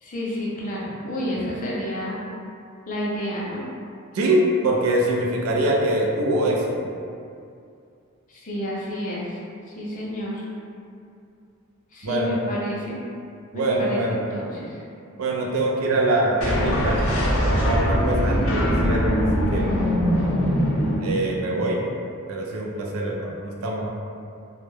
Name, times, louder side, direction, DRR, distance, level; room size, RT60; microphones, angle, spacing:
voice 1, 0.0-2.2 2.9-3.6 8.3-9.4 9.7-10.5 11.9-13.0 13.5-14.8, equal, 40° left, -5 dB, 0.5 m, -30 dB
voice 2, 4.1-6.8 12.0-12.4 13.5-14.2 15.2-17.0 17.3-19.7 21.0-21.8 22.3-23.9, right 1 dB, 90° right, -1 dB, 0.4 m, -24 dB
sound 1, 16.4-21.6, equal, 90° left, 0.5 m, -22 dB
2.2 x 2.0 x 3.0 m, 2.4 s
head